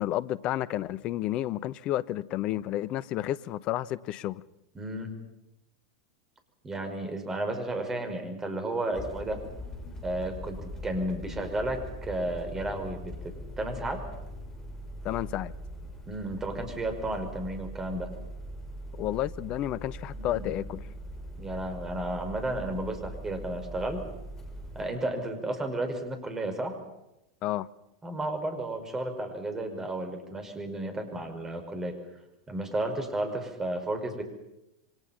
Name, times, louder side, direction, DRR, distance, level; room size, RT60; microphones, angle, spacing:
voice 1, 0.0-4.4 15.0-15.5 19.0-20.8 27.4-27.7, left 14 dB, 40° left, 0.8 m, -31 dB
voice 2, 4.7-5.1 6.6-9.4 10.0-14.1 16.1-18.1 20.1-20.7 21.4-24.0 24.7-26.8 28.0-32.0 32.5-34.2, right 1 dB, 15° right, 5.0 m, -33 dB
sound 1, 8.9-24.9, equal, 20° left, 6.4 m, -41 dB
27.5 x 24.0 x 5.7 m
figure-of-eight pair, 85°, 3 cm